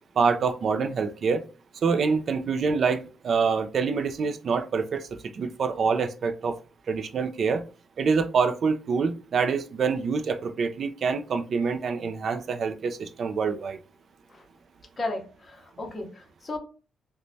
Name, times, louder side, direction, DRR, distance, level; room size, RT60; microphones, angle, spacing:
voice 1, 0.2-1.4 1.7-6.6 6.9-7.6 8.0-13.8, right 5 dB, 45° right, 7 dB, 0.3 m, -26 dB
voice 2, 15.0-16.6, left 2 dB, 25° left, 2 dB, 0.7 m, -34 dB
3.1 x 2.1 x 2.6 m, 0.35 s
cardioid pair, 155°, 0 cm